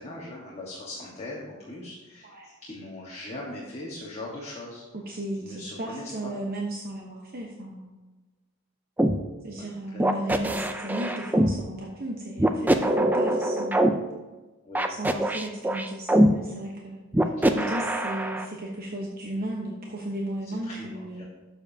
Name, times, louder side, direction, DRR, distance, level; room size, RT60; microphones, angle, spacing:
voice 1, 0.0-4.8 5.4-6.3 9.6-10.0 14.6-14.8 17.4-17.9 20.6-21.2, left 1 dB, 30° left, -5 dB, 1.4 m, -40 dB
voice 2, 4.9-7.9 9.4-13.9 14.9-17.3 17.5-21.2, right 1 dB, 45° right, -1 dB, 1.0 m, -35 dB
sound 1, 9.0-9.2 10.0-11.5 12.4-13.9 14.8-16.3 17.1-18.5, right 1 dB, 10° right, 0.4 m, -23 dB
12.0 x 7.1 x 2.8 m, 1.2 s
head